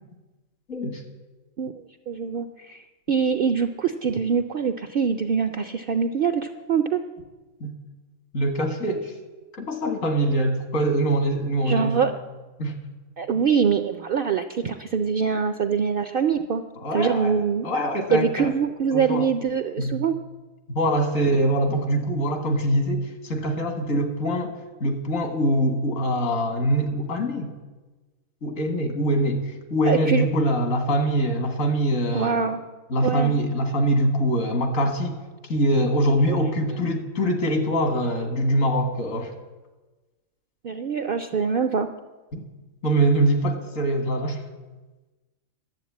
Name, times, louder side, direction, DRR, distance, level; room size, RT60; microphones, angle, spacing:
voice 1, 0.7-1.0 7.6-7.7 8.3-9.1 9.6-12.0 12.6-12.8 16.8-17.4 17.6-18.5 18.9-19.3 19.8-19.9 20.7-24.5 24.8-27.5 28.4-32.3 32.9-35.2 35.5-39.3 42.3-42.4 42.8-44.4, right 1 dB, 70° left, 5 dB, 2.0 m, -23 dB
voice 2, 2.1-7.0 11.7-12.1 13.2-16.6 16.9-17.7 18.1-20.2 29.8-30.3 32.1-32.6 33.0-33.3 36.3-36.4 40.6-41.9, right 6 dB, 65° right, 9 dB, 0.5 m, -24 dB
11.5 x 7.9 x 8.3 m, 1.2 s
omnidirectional pair, 1.4 m